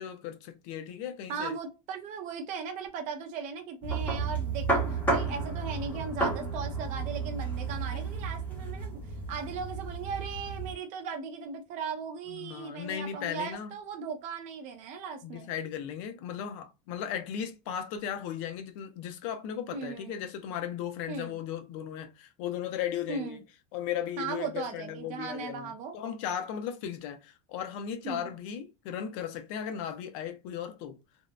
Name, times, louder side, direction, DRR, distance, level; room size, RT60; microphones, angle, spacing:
voice 1, 0.0-1.6 5.9-6.0 7.7-8.4 12.3-13.7 15.2-23.4 23.7-31.0, left 9 dB, 55° left, 0.5 m, -36 dB
voice 2, 1.3-9.0 9.3-15.5 19.7-20.2 21.1-21.4 23.1-23.4 24.2-25.9 28.0-28.3, right 5 dB, 35° right, 0.5 m, -38 dB
sound 1, 3.8-10.7, right 3 dB, 10° left, 0.8 m, -32 dB
2.7 x 2.0 x 2.2 m
supercardioid pair, 155°, 20 cm